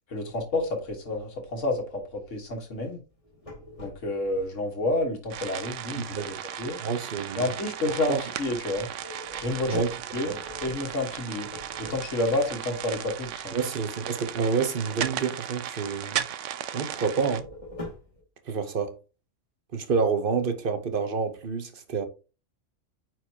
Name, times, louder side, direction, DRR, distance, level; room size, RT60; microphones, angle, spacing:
voice 1, 0.1-3.0 3.8-6.8 7.3-8.9 9.4-9.8 10.1-10.3 10.6-11.5 11.8-13.6, left 2 dB, 75° left, 1.9 m, -29 dB
sound 1, 3.1-4.4 8.9-12.5 17.0-18.2, left 2 dB, 25° left, 2.2 m, -42 dB
sound 2, 5.3-17.4, right 10 dB, 80° right, 1.0 m, -36 dB
voice 2, 6.0-6.3 6.8-7.5 8.1-8.2 9.7-9.9 10.3-10.4 13.5-16.3 16.7-17.5 18.5-18.9 19.7-22.1, right 5 dB, 50° right, 1.0 m, -28 dB
9.1 x 4.6 x 2.8 m
omnidirectional pair, 1.3 m